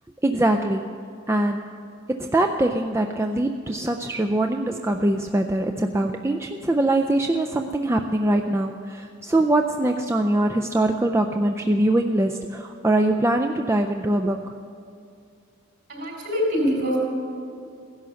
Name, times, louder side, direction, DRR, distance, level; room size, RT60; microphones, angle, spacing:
voice 1, 0.2-1.0 1.3-1.7 2.1-14.5, right 1 dB, 10° right, 4 dB, 0.4 m, -23 dB
voice 2, 15.9-17.0, equal, 55° right, 0 dB, 4.7 m, -24 dB
16.5 x 11.0 x 6.9 m, 2.4 s
head